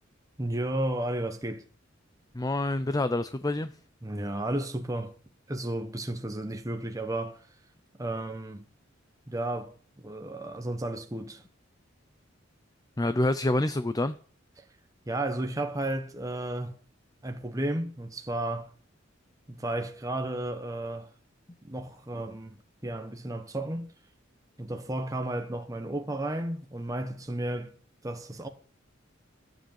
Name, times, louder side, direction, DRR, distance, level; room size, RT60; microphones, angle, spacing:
voice 1, 0.4-1.6 4.0-5.1 5.5-7.5 8.0-8.6 9.3-11.4 14.6-14.7 15.1-16.8 17.2-18.7 19.5-21.1 21.6-23.9 24.6-27.7 28.0-28.5, right 1 dB, 15° right, 1.1 m, -33 dB
voice 2, 2.4-3.7 13.0-14.1, left 1 dB, 20° left, 0.6 m, -27 dB
14.0 x 7.9 x 7.3 m
head